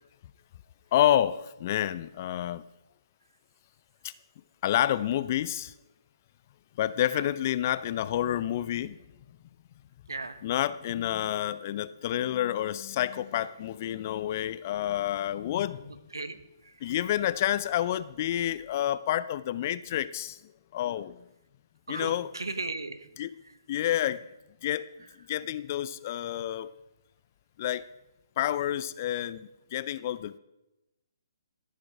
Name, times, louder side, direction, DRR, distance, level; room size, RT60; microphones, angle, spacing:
voice 1, 0.9-2.6 4.6-5.7 6.8-9.0 10.4-15.8 16.8-20.4 20.7-21.2 21.9-22.3 23.2-23.3 23.7-24.2 24.6-24.9 25.3-26.7 27.6-27.9 28.4-30.4, left 12 dB, 40° left, 16 dB, 0.4 m, -29 dB
voice 2, 10.1-10.4 16.1-16.4 16.6-16.7 21.9-23.1, right 3 dB, 80° right, 11 dB, 1.0 m, -36 dB
14.0 x 6.6 x 4.9 m, 0.96 s
figure-of-eight pair, 135°, 2 cm